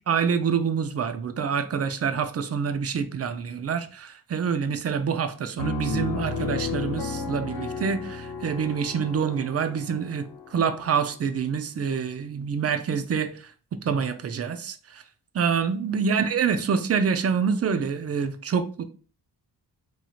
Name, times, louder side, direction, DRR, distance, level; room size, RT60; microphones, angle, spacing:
voice 1, 0.1-10.3 10.5-13.3 13.8-15.0 15.3-18.8, right 6 dB, 40° right, 0.4 m, -26 dB
Piano, 5.6-11.1, left 4 dB, 75° left, 0.7 m, -33 dB
3.1 x 2.7 x 2.4 m
cardioid pair, 85°, 40 cm